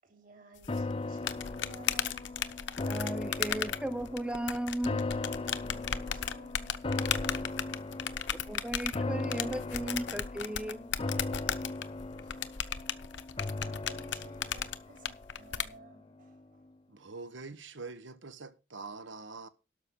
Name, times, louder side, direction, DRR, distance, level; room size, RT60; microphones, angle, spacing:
voice 1, 0.0-2.2 5.5-8.0 12.2-12.8 13.2-16.7, right 1 dB, 45° right, 3.2 m, -55 dB
sound 1, 0.6-15.7, left 8 dB, 75° left, 0.8 m, -35 dB
sound 2, 0.7-16.0 16.4-16.5, left 2 dB, 30° left, 0.5 m, -38 dB
voice 2, 2.9-5.0 8.5-10.9, right 1 dB, 5° right, 0.7 m, -35 dB
voice 3, 16.9-19.5, right 3 dB, 85° right, 1.3 m, -44 dB
12.5 x 5.6 x 6.2 m
head